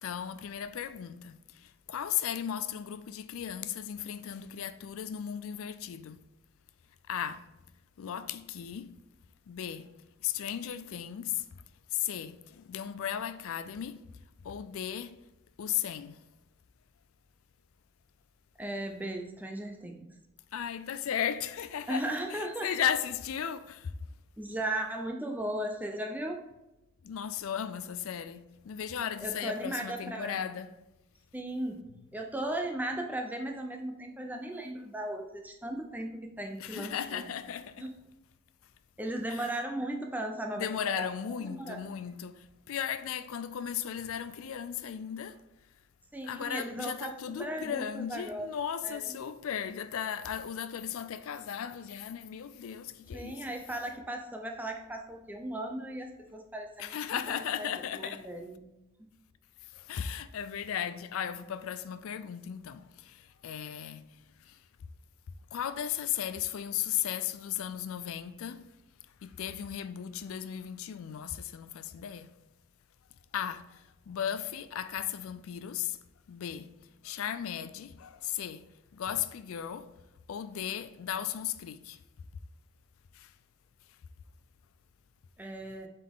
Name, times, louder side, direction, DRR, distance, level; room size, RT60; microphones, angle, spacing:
voice 1, 0.0-6.2 7.1-7.5 8.0-8.9 9.5-9.9 10.2-11.5 11.9-14.0 14.4-15.2 15.6-16.2 20.5-22.0 22.3-23.9 27.0-30.7 36.6-37.8 39.3-39.4 40.6-45.4 46.2-53.4 56.8-58.3 59.7-64.0 64.5-64.6 65.5-68.7 69.2-72.3 73.3-76.0 76.3-76.7 77.0-79.9 80.3-82.0 83.1-83.3, left 9 dB, 70° left, 0.4 m, -36 dB
voice 2, 18.6-20.1 21.9-22.7 24.4-26.4 29.2-30.4 31.3-31.8 32.1-37.2 37.8-37.9 39.0-41.1 41.4-41.9 46.1-48.5 48.8-49.2 53.1-58.6 59.0-59.1 85.4-85.9, right 1 dB, 10° right, 0.6 m, -37 dB
7.5 x 4.2 x 3.6 m
head